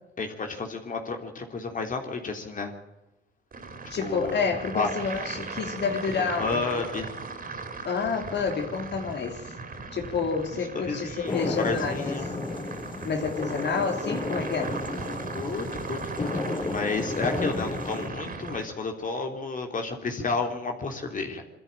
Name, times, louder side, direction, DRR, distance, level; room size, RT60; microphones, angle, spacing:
voice 1, 0.2-2.7 4.0-4.9 6.2-7.1 10.7-12.3 15.3-21.4, left 4 dB, 40° left, 3 dB, 3.3 m, -31 dB
sound 1, 3.5-18.6, right 4 dB, 45° right, 4.4 m, -38 dB
voice 2, 3.9-6.9 7.8-9.5 9.9-12.1 13.0-14.8, left 5 dB, 60° left, 4 dB, 3.1 m, -29 dB
sound 2, 11.3-18.1, left 2 dB, 25° left, 4.3 m, -33 dB
23.5 x 13.5 x 9.0 m, 0.96 s
cardioid pair, 90°, 20 cm